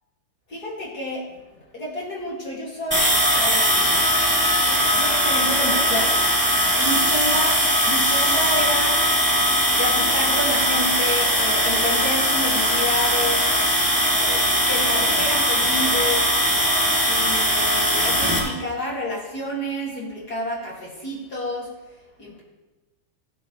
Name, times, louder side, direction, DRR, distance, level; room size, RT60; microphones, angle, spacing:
voice 1, 0.5-4.0 4.6-6.2 6.7-9.0 9.8-13.5 14.2-16.3 17.0-21.7 22.2-22.4, left 1 dB, 30° left, -5 dB, 1.9 m, -29 dB
sound 1, 2.9-18.4, equal, 5° right, 1.4 m, -20 dB
16.5 x 9.3 x 3.3 m, 1.1 s
omnidirectional pair, 5.3 m